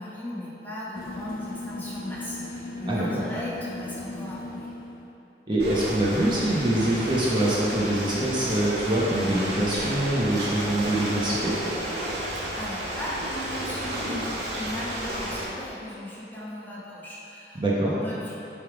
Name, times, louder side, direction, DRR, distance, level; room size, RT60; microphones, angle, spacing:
voice 1, 0.0-4.7 12.5-18.3, left 1 dB, 10° left, -7 dB, 1.1 m, -37 dB
sound 1, 1.0-5.2, left 2 dB, 55° left, 0.5 m, -37 dB
voice 2, 5.5-11.5 17.5-17.9, right 1 dB, 25° right, -6 dB, 0.8 m, -24 dB
Ocean, 5.6-15.4, right 1 dB, 70° right, 1.6 m, -32 dB
8.0 x 3.6 x 4.9 m, 2.8 s
head